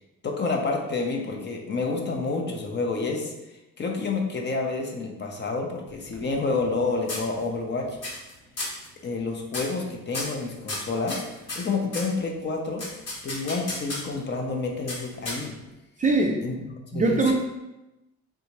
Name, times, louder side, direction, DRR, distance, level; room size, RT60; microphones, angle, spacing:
voice 1, 0.2-3.3 3.8-8.0 9.0-11.2 11.6-12.8 13.2-15.5 16.4-16.6 16.9-17.3, left 3 dB, 35° left, 1 dB, 0.6 m, -29 dB
sound 1, 5.9-6.8 7.1-7.7 8.0-8.3 8.6-8.9 9.5-9.8 10.1-12.1 12.8-14.2 14.9-15.7, left 2 dB, 55° left, 1.2 m, -34 dB
voice 2, 16.0-16.4 16.9-17.3, right 3 dB, 25° right, 1 dB, 0.4 m, -21 dB
3.4 x 2.6 x 3.0 m, 0.96 s
cardioid pair, 90°, 30 cm